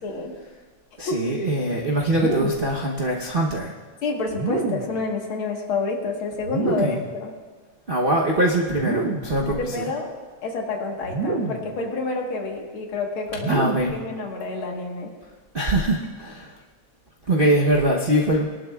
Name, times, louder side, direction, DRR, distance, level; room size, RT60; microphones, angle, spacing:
voice 1, 0.0-0.3 1.1-1.2 1.9-2.0 4.0-7.3 9.4-10.1 10.4-13.5 13.9-15.1, left 3 dB, 80° left, 1 dB, 2.3 m, -28 dB
voice 2, 1.0-3.7 6.6-7.0 7.9-9.9 13.5-14.0 15.5-16.6 17.3-18.5, right 1 dB, 50° right, -2 dB, 0.6 m, -22 dB
sound 1, 2.1-2.8 4.3-5.0 6.4-7.2 8.7-9.4 11.0-11.8 13.3-14.1, right 3 dB, 70° right, 1.7 m, -28 dB
22.0 x 11.5 x 2.3 m, 1.4 s
omnidirectional pair, 2.3 m